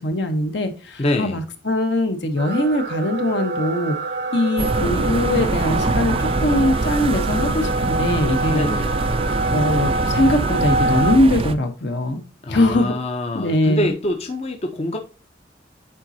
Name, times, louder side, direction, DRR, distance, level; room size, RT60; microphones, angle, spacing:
voice 1, 0.0-4.0 4.3-8.6 9.5-12.2 12.5-13.0 13.3-13.9, left 1 dB, 60° left, 0.9 m, -21 dB
voice 2, 1.0-1.4 8.5-9.0 12.4-15.0, left 1 dB, 35° left, 0.6 m, -25 dB
sound 1, 2.4-11.2, right 2 dB, 60° right, 0.7 m, -26 dB
sound 2, 4.6-11.5, right 3 dB, 30° right, 0.3 m, -24 dB
8.8 x 4.1 x 2.6 m
head